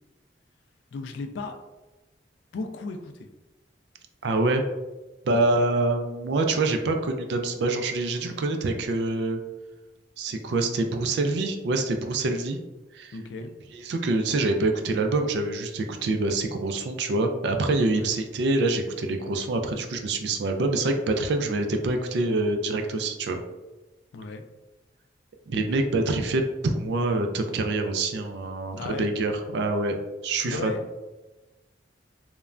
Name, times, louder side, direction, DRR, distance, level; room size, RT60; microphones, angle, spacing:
voice 1, 0.9-1.6 2.5-3.1 5.3-5.4 13.1-13.5 17.9-18.1 24.1-24.4 28.8-29.1 30.4-30.8, left 3 dB, 80° left, 7 dB, 0.3 m, -35 dB
voice 2, 4.2-4.6 5.2-9.4 10.2-12.6 12.9-13.2 13.7-23.4 25.5-30.0 30.2-30.7, right 2 dB, 65° right, 5 dB, 0.3 m, -26 dB
3.1 x 2.1 x 2.4 m, 1.1 s
head